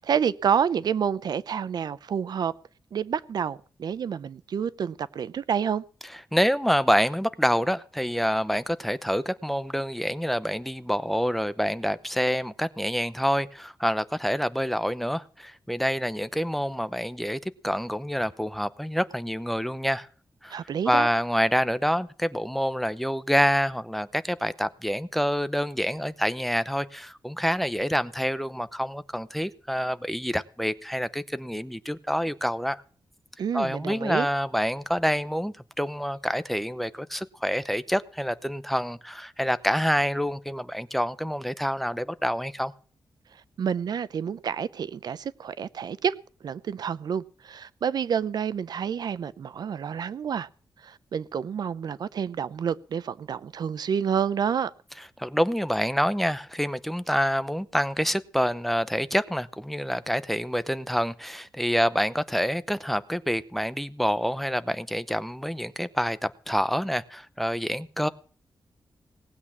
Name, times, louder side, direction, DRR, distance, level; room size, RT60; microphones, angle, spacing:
voice 1, 0.0-2.5 2.9-5.8 20.5-21.1 33.4-34.3 43.6-46.1 46.4-50.5 50.8-54.7, right 7 dB, 70° right, 0.6 m, -28 dB
voice 2, 6.3-20.1 20.4-20.6 20.9-32.8 33.5-42.7 55.2-68.1, equal, ahead, 0.7 m, -27 dB
18.5 x 8.4 x 7.2 m
wide cardioid pair, 125°, 7 cm